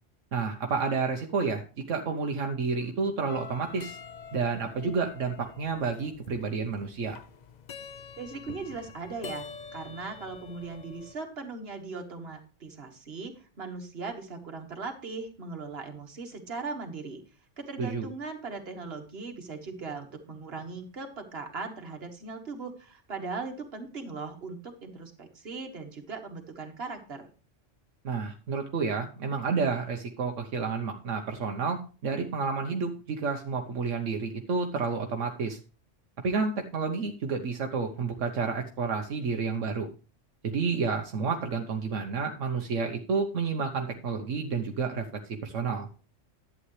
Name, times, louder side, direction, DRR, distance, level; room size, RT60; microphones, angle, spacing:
voice 1, 0.3-1.6 1.9-4.0 4.3-7.2 17.8-18.1 28.0-35.6 36.2-39.9 40.4-45.9, right 5 dB, 80° right, 3 dB, 1.3 m, -30 dB
sound 1, 3.3-11.1, left 6 dB, 45° left, 0.6 m, -46 dB
voice 2, 8.2-9.5 9.7-17.2 17.6-27.3, right 4 dB, 55° right, 5 dB, 1.8 m, -39 dB
11.5 x 8.6 x 3.2 m, 0.35 s
omnidirectional pair, 1.3 m